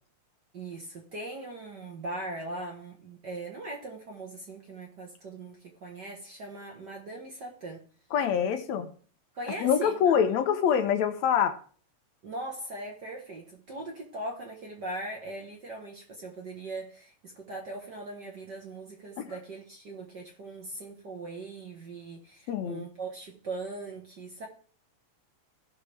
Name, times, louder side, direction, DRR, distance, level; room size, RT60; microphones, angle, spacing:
voice 1, 0.5-7.8 8.7-8.8 9.3-10.3 12.2-24.5, right 2 dB, 50° right, 1.5 m, -40 dB
voice 2, 8.1-8.9 9.6-11.6 19.2-19.3 22.5-22.9, left 8 dB, 75° left, 2.1 m, -25 dB
16.0 x 5.7 x 3.4 m
omnidirectional pair, 3.3 m